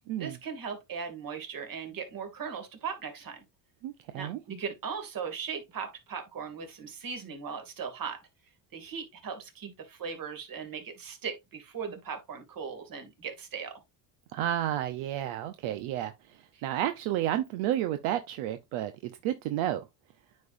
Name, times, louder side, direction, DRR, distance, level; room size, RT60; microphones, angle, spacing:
voice 1, 0.2-3.4 4.1-8.2 8.7-13.7 16.5-16.6, right 6 dB, 45° right, 2.6 m, -38 dB
voice 2, 3.8-4.4 14.3-19.8, right 12 dB, 75° right, 0.9 m, -31 dB
9.1 x 5.4 x 2.6 m
supercardioid pair, 100°, 49 cm